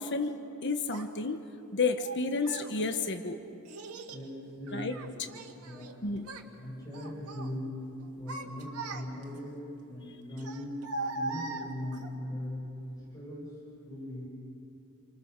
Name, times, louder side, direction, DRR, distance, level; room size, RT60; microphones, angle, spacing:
voice 1, 0.0-1.4 1.7-3.4 4.7-4.9 6.0-6.3, left 3 dB, 55° left, 7 dB, 1.1 m, -31 dB
Child speech kid speaking, 0.9-1.1 2.0-2.7 3.6-4.2 4.7-5.9 6.2-6.5 6.9-7.5 8.0-9.4 10.4-12.1, right 3 dB, 90° right, 1.9 m, -40 dB
voice 2, 4.1-5.3 5.6-6.0 6.6-7.8 8.2-10.8 11.1-13.6 13.9-14.3, left 1 dB, 15° left, -5 dB, 6.3 m, -40 dB
29.5 x 24.5 x 6.7 m, 2.8 s
head